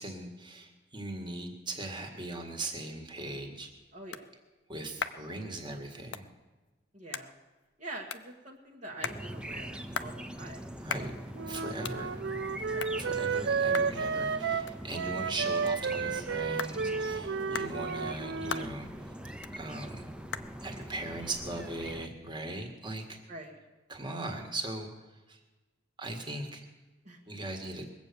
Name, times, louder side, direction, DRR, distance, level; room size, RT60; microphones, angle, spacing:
voice 1, 0.0-3.7 4.7-6.3 10.8-11.1 11.5-12.2 13.0-18.9 19.5-20.1 20.6-23.2 23.9-24.9 25.3-25.4 26.0-26.7 27.3-27.9, right 2 dB, 25° right, 3 dB, 1.8 m, -39 dB
sound 1, 3.2-22.5, left 6 dB, 70° left, 0.6 m, -44 dB
voice 2, 3.9-4.3 6.9-7.3 7.8-11.2 12.7-12.9 17.2-17.8 23.3-23.6 27.0-27.2, right 2 dB, 40° right, -3 dB, 1.4 m, -46 dB
sound 2, 9.0-22.1, equal, 5° right, 0.7 m, -43 dB
Wind instrument woodwind instrument, 11.3-18.6, right 5 dB, 65° right, 0.5 m, -32 dB
21.0 x 8.2 x 6.9 m, 1.2 s
head